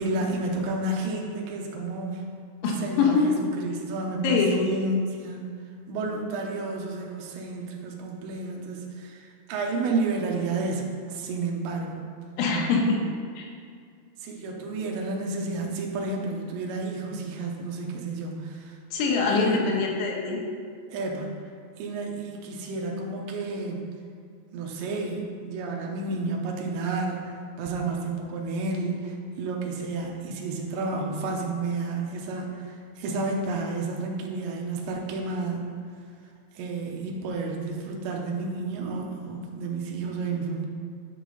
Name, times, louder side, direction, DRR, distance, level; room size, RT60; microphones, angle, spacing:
voice 1, 0.0-2.3 2.8-5.5 5.9-12.0 14.2-18.8 19.3-19.8 20.9-21.4 21.8-23.8 24.5-35.6 36.6-40.7, right 3 dB, 80° right, 0 dB, 2.9 m, -31 dB
voice 2, 3.0-3.3 4.2-4.6 12.4-13.0 13.4-13.5 18.9-20.4, left 4 dB, 80° left, -1 dB, 3.3 m, -23 dB
10.0 x 5.0 x 3.9 m, 2.2 s
omnidirectional pair, 5.6 m